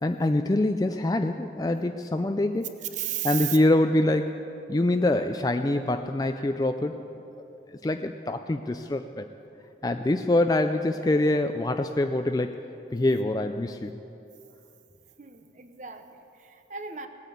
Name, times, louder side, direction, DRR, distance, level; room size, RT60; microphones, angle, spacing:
voice 1, 0.0-2.7 3.2-4.3 4.7-7.0 7.7-9.3 9.8-12.6 12.9-14.0, left 1 dB, 20° left, 7 dB, 0.4 m, -25 dB
voice 2, 2.9-3.6 15.2-17.1, right 10 dB, 45° right, 8 dB, 0.9 m, -35 dB
18.5 x 9.1 x 8.4 m, 2.8 s
head